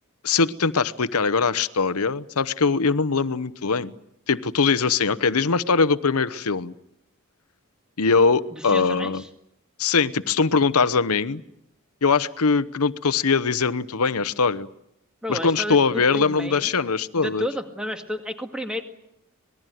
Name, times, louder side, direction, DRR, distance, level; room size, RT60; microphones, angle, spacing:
voice 1, 0.2-3.9 4.3-6.7 8.0-9.2 9.8-11.4 12.0-14.7 15.3-17.4, left 4 dB, 90° left, 16 dB, 0.9 m, -21 dB
voice 2, 8.5-9.3 15.2-16.7 17.2-18.8, left 1 dB, 5° right, 5 dB, 2.0 m, -31 dB
26.0 x 20.0 x 9.2 m, 0.80 s
head